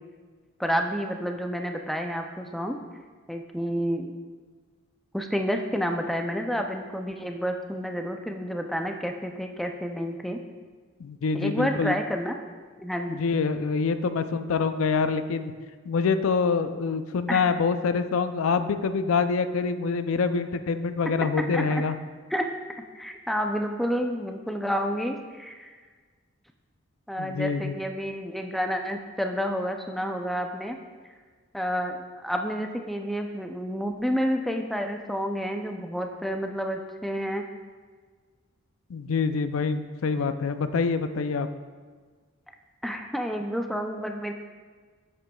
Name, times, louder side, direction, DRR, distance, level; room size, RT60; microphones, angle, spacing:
voice 1, 0.6-2.8 3.3-4.1 5.1-10.4 11.3-12.3 12.8-13.2 17.3-17.4 21.5-21.8 22.3-22.5 23.0-25.7 27.1-30.8 31.5-37.4 42.8-44.3, equal, ahead, 3 dB, 0.4 m, -29 dB
voice 2, 11.0-12.0 13.1-15.5 15.9-22.0 27.2-27.7 38.9-41.5, left 5 dB, 75° left, 10 dB, 0.4 m, -26 dB
11.0 x 7.7 x 2.3 m, 1.5 s
head